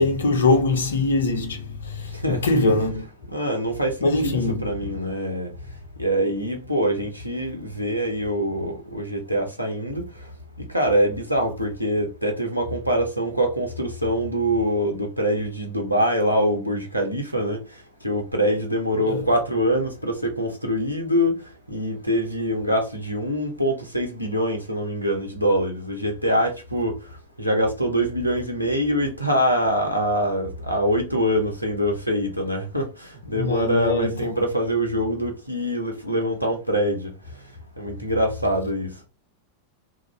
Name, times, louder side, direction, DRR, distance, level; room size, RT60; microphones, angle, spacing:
voice 1, 0.0-3.0 4.0-4.6 19.1-19.2 33.3-34.3, left 3 dB, 70° left, 0.6 m, -22 dB
voice 2, 3.3-5.5 6.0-10.1 10.7-17.6 18.0-21.4 21.7-26.9 27.4-37.1 37.8-38.9, equal, 90° right, 0.6 m, -24 dB
2.5 x 2.0 x 3.1 m
figure-of-eight pair, 90°, 0 cm